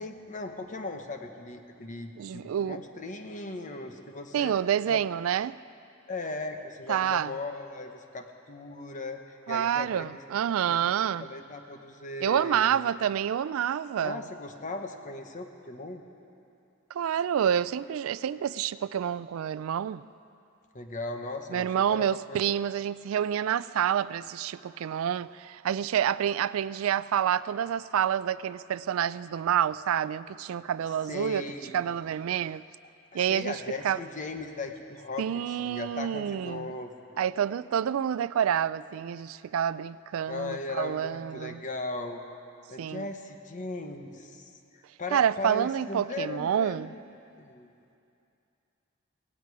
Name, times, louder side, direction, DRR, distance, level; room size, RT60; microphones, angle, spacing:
voice 1, 0.0-4.6 4.9-5.0 6.1-10.2 10.7-10.8 11.2-12.8 14.0-16.0 20.7-22.4 31.1-31.8 33.1-36.9 40.3-42.2 42.7-47.0 47.4-47.7, left 3 dB, 40° left, 1.1 m, -38 dB
voice 2, 2.2-2.8 4.3-5.6 6.9-7.3 9.5-11.3 12.2-14.2 16.9-20.0 21.5-31.4 31.7-32.6 33.1-34.0 35.2-36.7 37.2-41.6 42.8-43.1 45.1-46.9, right 9 dB, 80° right, 0.3 m, -28 dB
17.5 x 16.5 x 4.8 m
head